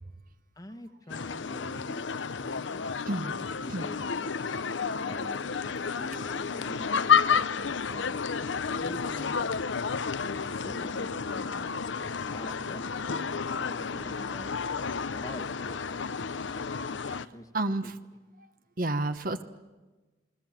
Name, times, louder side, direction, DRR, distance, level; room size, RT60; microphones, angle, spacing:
voice 1, 0.6-2.1 2.4-2.9 3.6-4.3 5.0-8.2 8.8-9.4 10.4-11.7 12.3-14.5 15.1-16.0 17.3-17.5, left 1 dB, 20° left, 8 dB, 1.3 m, -45 dB
sound 1, 1.1-17.3, left 6 dB, 75° left, 0.7 m, -31 dB
voice 2, 17.5-17.9 18.8-19.4, right 2 dB, 45° right, 10 dB, 1.1 m, -30 dB
28.5 x 21.0 x 7.5 m, 1.2 s
head